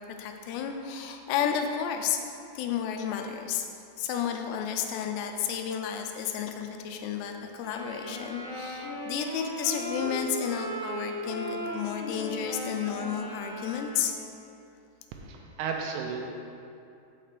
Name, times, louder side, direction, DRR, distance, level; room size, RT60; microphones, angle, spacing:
voice 1, 0.0-2.2 2.6-3.7 4.0-14.2, left 8 dB, 85° left, 4 dB, 2.8 m, -32 dB
sound 1, 7.5-14.4, equal, 35° left, 1.0 m, -37 dB
voice 2, 15.1-16.2, right 5 dB, 80° right, 2 dB, 2.6 m, -34 dB
6.2 x 5.7 x 6.6 m, 2.6 s
omnidirectional pair, 4.9 m